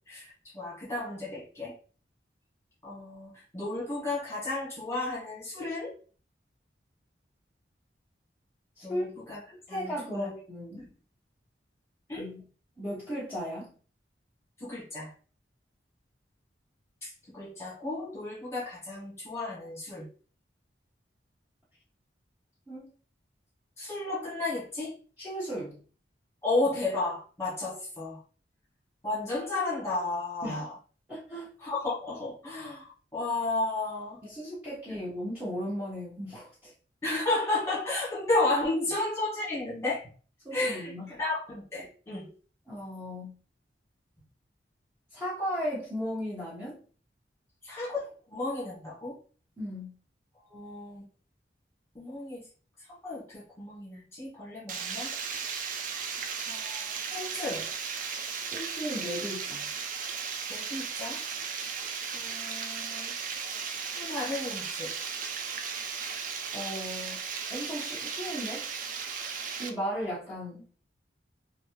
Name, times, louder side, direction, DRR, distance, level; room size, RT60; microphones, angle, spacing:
voice 1, 0.5-1.7 2.8-5.9 8.8-9.4 9.7-10.3 10.8-10.9 12.1-12.3 14.6-15.1 17.0-20.1 23.8-24.9 26.4-28.2 29.0-30.7 31.6-34.2 37.0-40.0 40.5-42.3 47.6-49.2 50.5-51.0 51.9-52.4 53.0-55.1 56.5-57.7 60.5-61.2 62.1-63.1 63.9-64.9, left 2 dB, 15° left, -8 dB, 1.5 m, -33 dB
voice 2, 8.8-9.1 9.7-10.8 12.2-12.4 12.8-13.7 22.7-22.9 25.2-25.8 30.4-30.7 31.1-31.5 34.2-36.7 40.4-41.1 42.7-43.4 45.1-46.8 49.6-49.9 58.5-59.7 66.5-67.2 67.5-68.7 69.6-70.7, equal, 10° right, -10 dB, 1.1 m, -36 dB
Water, 54.7-69.7, right 6 dB, 45° right, 0.4 m, -36 dB
3.0 x 2.7 x 2.9 m, 0.40 s
head